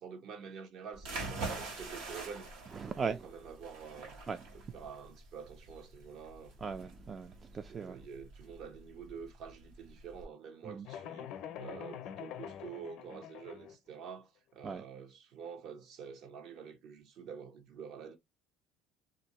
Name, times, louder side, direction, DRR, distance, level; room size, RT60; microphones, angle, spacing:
voice 1, 0.0-2.5 2.8-4.2 4.5-6.6 7.7-11.3 11.6-18.2, right 6 dB, 60° right, 0.8 m, -48 dB
sound 1, 0.9-10.2, right 3 dB, 85° right, 1.8 m, -45 dB
voice 2, 2.8-3.2 4.3-4.4 6.6-8.0 10.6-10.9 14.6-14.8, right 5 dB, 30° right, 0.3 m, -38 dB
sound 2, 10.9-13.8, left 10 dB, 60° left, 0.5 m, -45 dB
2.7 x 2.6 x 2.9 m
supercardioid pair, 110°, 0 cm